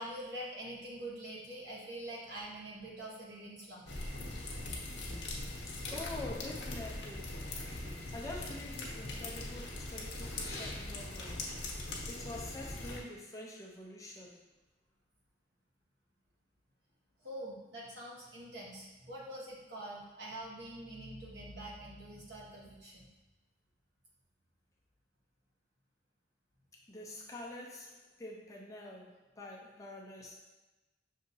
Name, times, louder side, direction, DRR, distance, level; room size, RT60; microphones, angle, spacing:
voice 1, 0.0-3.9 17.2-23.1, right 1 dB, 65° right, -5 dB, 1.2 m, -45 dB
sound 1, 3.9-13.0, left 2 dB, 75° left, 0.8 m, -41 dB
voice 2, 5.9-11.4 12.1-14.4 26.9-30.5, left 2 dB, 20° left, -3 dB, 0.6 m, -46 dB
6.2 x 2.8 x 2.7 m, 1.1 s
head